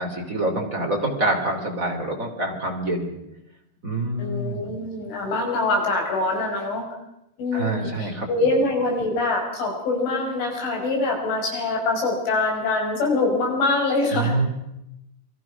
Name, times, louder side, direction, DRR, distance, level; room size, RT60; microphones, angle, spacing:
voice 1, 0.0-3.1 3.8-4.7 7.5-8.3 14.1-14.5, right 2 dB, 20° right, 2 dB, 3.1 m, -26 dB
voice 2, 4.2-6.8 7.4-14.5, left 2 dB, 85° left, 1 dB, 8.4 m, -24 dB
28.5 x 23.0 x 6.1 m, 0.86 s
omnidirectional pair, 5.4 m